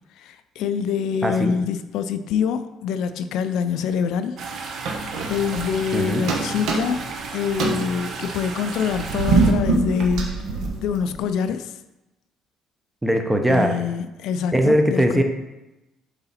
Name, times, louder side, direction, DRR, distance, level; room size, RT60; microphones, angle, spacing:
voice 1, 0.2-4.4 4.9-7.1 7.3-10.4 10.8-11.8 13.5-15.2, left 7 dB, 70° left, 10 dB, 0.4 m, -25 dB
voice 2, 1.2-1.6 5.9-6.2 13.0-13.8 14.5-15.2, right 1 dB, 5° right, 5 dB, 0.6 m, -20 dB
sound 1, 4.4-9.5, right 4 dB, 50° right, 0.9 m, -34 dB
sound 2, 4.8-6.0 6.3-7.2 7.5-11.3, right 3 dB, 75° right, 1.2 m, -24 dB
7.8 x 3.9 x 4.2 m, 1.0 s
cardioid pair, 155°, 0 cm